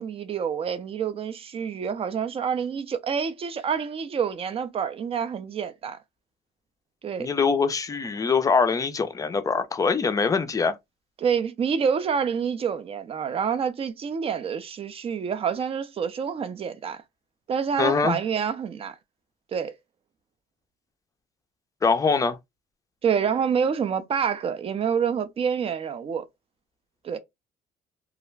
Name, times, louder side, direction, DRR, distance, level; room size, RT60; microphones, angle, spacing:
voice 1, 0.0-6.0 7.0-7.3 11.2-17.0 17.5-19.0 19.5-19.7 23.0-26.3 27.0-27.2, right 7 dB, 35° right, 0.4 m, -27 dB
voice 2, 7.2-10.8 17.8-18.2 21.8-22.4, left 5 dB, 20° left, 0.4 m, -23 dB
2.4 x 2.1 x 3.1 m
cardioid pair, 110°, 17 cm